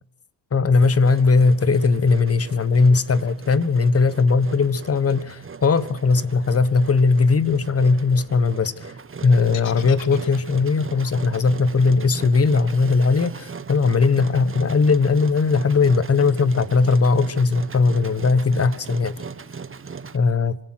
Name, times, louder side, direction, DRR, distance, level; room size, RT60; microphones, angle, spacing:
voice 1, 0.5-8.9 9.2-19.2 20.1-20.6, left 4 dB, 30° left, 1.3 m, -19 dB
Engine, 0.8-20.2, right 5 dB, 25° right, 1.4 m, -39 dB
sound 1, 9.5-13.6, left 13 dB, 75° left, 1.8 m, -43 dB
25.5 x 17.0 x 6.1 m
cardioid pair, 85°, 46 cm